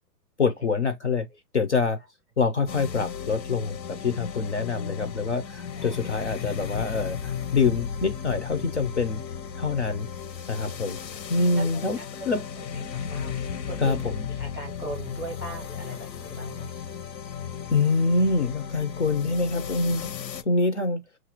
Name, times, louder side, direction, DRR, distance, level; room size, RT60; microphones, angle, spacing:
voice 1, 0.4-1.3 1.5-2.0 2.4-9.2 9.6-10.1 10.5-11.0 11.3-12.0 12.2-12.5 13.8-14.3 17.7-20.1 20.4-21.0, left 4 dB, 45° left, 0.4 m, -25 dB
sound 1, 2.7-20.4, left 7 dB, 90° left, 0.9 m, -35 dB
voice 2, 10.7-11.1 11.5-11.7 12.2-12.3 12.9-13.3 13.7-14.0 14.4-16.7, right 2 dB, 15° right, 0.6 m, -39 dB
6.2 x 2.5 x 2.9 m
hypercardioid pair, 175°, 50 cm